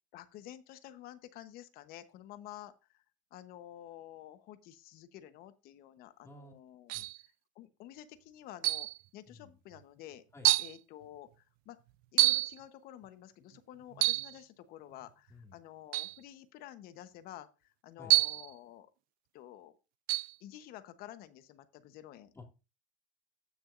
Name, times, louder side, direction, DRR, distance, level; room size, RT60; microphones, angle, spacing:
voice 1, 0.1-3.0 3.3-6.9 7.5-8.9 9.1-10.2 10.6-11.8 12.1-18.9 19.3-19.7 20.4-22.3, left 12 dB, 55° left, 11 dB, 1.0 m, -50 dB
voice 2, 6.2-6.5 6.9-7.1 9.3-9.5 10.3-10.5 15.3-15.6 18.0-18.2 22.3-22.5, left 2 dB, 15° left, 1 dB, 2.1 m, -52 dB
sound 1, 6.9-7.2 8.6-9.0 9.7-9.8 10.4-10.8 12.2-12.5 13.9-14.3 15.9-16.2 18.1-18.5 20.1-20.3, right 21 dB, 55° right, 0.4 m, -27 dB
16.0 x 6.2 x 2.5 m, 0.29 s
supercardioid pair, 120°, 18 cm